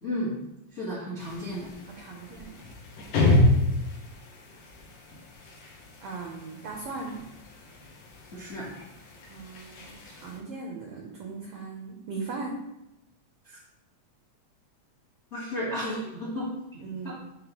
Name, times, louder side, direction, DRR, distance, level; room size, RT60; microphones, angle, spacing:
voice 1, 0.0-0.3 0.7-1.7 8.3-8.7 13.4-13.6 15.3-16.8 17.0-17.1, equal, 65° left, -6 dB, 0.6 m, -33 dB
sound 1, 1.2-10.4, left 2 dB, 85° left, 2.5 m, -30 dB
voice 2, 1.9-2.6 6.0-7.2 9.3-12.6 16.8-17.1, right 4 dB, 85° right, 1 dB, 1.3 m, -38 dB
9.2 x 3.4 x 2.9 m, 0.88 s
omnidirectional pair, 3.5 m